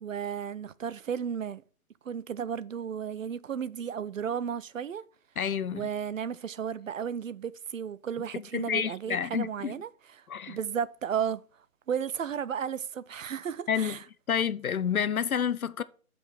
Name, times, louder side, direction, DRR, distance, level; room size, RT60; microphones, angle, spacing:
voice 1, 0.0-1.6 2.0-5.1 5.7-11.4 11.9-14.0, right 8 dB, 65° right, 0.6 m, -34 dB
voice 2, 5.4-5.9 8.3-9.7 10.3-10.6 13.7-14.0 14.3-15.8, left 8 dB, 75° left, 0.7 m, -29 dB
8.6 x 5.2 x 4.5 m
figure-of-eight pair, 155°, 43 cm